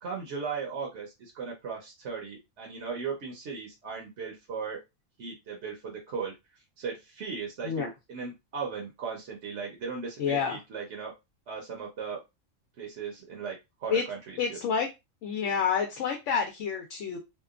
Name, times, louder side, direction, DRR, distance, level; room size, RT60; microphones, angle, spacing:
voice 1, 0.0-4.8 5.2-6.3 6.8-11.1 11.5-12.2 12.8-13.5 13.8-14.6, right 5 dB, 65° right, -1 dB, 1.0 m, -37 dB
voice 2, 10.2-10.6 13.9-14.0 14.4-14.9 15.2-17.2, left 6 dB, 70° left, 4 dB, 0.9 m, -28 dB
2.8 x 2.2 x 2.4 m, 0.23 s
omnidirectional pair, 1.4 m